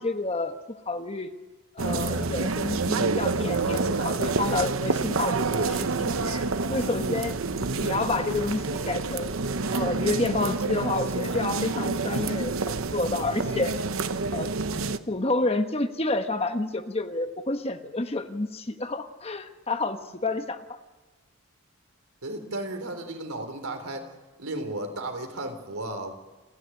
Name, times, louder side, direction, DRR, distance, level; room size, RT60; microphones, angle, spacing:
voice 1, 0.0-1.4 1.7-6.4 6.7-9.4 9.7-13.7 14.3-14.5 15.1-20.8, left 2 dB, 30° left, 8 dB, 1.1 m, -29 dB
sound 1, 1.8-15.0, right 3 dB, 70° right, 0.9 m, -28 dB
sound 2, 5.1-12.4, right 2 dB, 25° right, 2.7 m, -52 dB
voice 2, 22.2-24.1 24.4-26.1, right 2 dB, 85° right, 5 dB, 3.7 m, -34 dB
29.0 x 11.0 x 9.9 m, 1.3 s
head